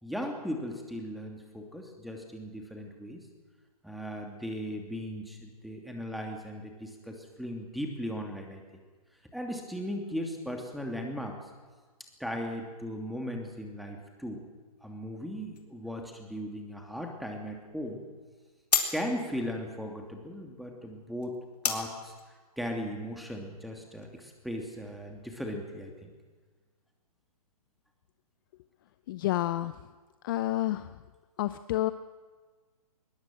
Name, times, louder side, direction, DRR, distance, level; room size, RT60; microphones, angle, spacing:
voice 1, 0.0-3.3 3.8-8.6 9.3-11.4 12.2-14.4 14.8-18.0 18.9-21.4 21.6-22.1 22.6-26.1, equal, ahead, 2 dB, 2.8 m, -37 dB
sound 1, 15.5-24.1, left 6 dB, 85° left, 3.8 m, -37 dB
voice 2, 29.1-29.7 30.2-30.8 31.4-31.9, left 15 dB, 35° left, 13 dB, 0.6 m, -29 dB
21.5 x 20.5 x 7.8 m, 1.4 s
hypercardioid pair, 145°, 20 cm